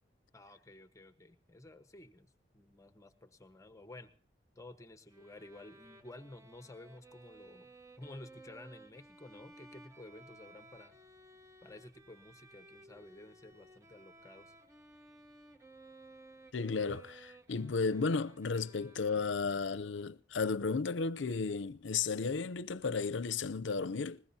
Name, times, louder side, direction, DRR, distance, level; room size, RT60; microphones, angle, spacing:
voice 1, 0.3-4.1 4.6-7.7 8.0-10.9 11.6-14.5, left 2 dB, 15° left, 1.2 m, -53 dB
Bowed string instrument, 5.1-19.7, right 2 dB, 15° right, 1.4 m, -58 dB
voice 2, 16.5-24.2, left 4 dB, 70° left, 0.6 m, -34 dB
20.5 x 20.5 x 2.8 m
head